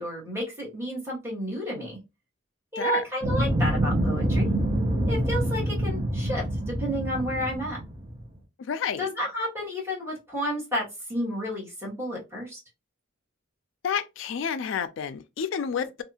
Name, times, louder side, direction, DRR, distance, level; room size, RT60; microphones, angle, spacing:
voice 1, 0.0-2.0 2.7-4.4 5.1-7.8 9.0-12.6, equal, 15° right, 1.2 m, -31 dB
sound 1, 3.2-8.2, right 1 dB, 30° right, 0.8 m, -26 dB
voice 2, 8.6-9.1 13.8-16.0, left 7 dB, 65° left, 0.3 m, -30 dB
2.6 x 2.4 x 2.7 m
head